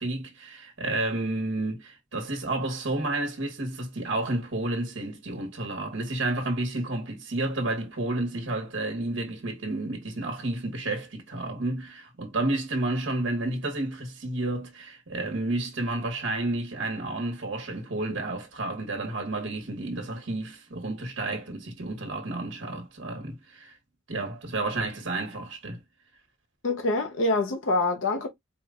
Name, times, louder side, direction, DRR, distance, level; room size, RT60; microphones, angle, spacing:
voice 1, 0.0-23.8 24.1-25.8, right 2 dB, 65° right, 1.1 m, -31 dB
voice 2, 26.6-28.3, left 2 dB, 75° left, 0.7 m, -25 dB
4.4 x 2.2 x 3.6 m
head